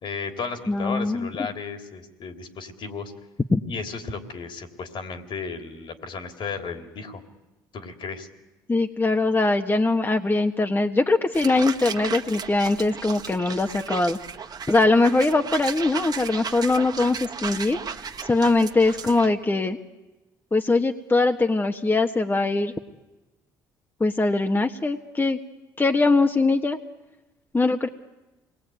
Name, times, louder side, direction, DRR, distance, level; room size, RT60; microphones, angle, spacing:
voice 1, 0.0-3.1 3.7-7.2 7.7-8.3, left 5 dB, 55° left, 6 dB, 3.5 m, -34 dB
voice 2, 0.7-1.3 3.5-3.6 8.7-14.2 14.7-17.8 18.2-19.8 20.5-22.7 24.0-25.4 25.8-26.8 27.5-27.9, left 3 dB, 20° left, 5 dB, 1.5 m, -21 dB
sound 1, 11.3-19.3, right 6 dB, 40° right, 1.7 m, -35 dB
28.0 x 20.5 x 9.3 m, 1.1 s
hypercardioid pair, 55°, 10 cm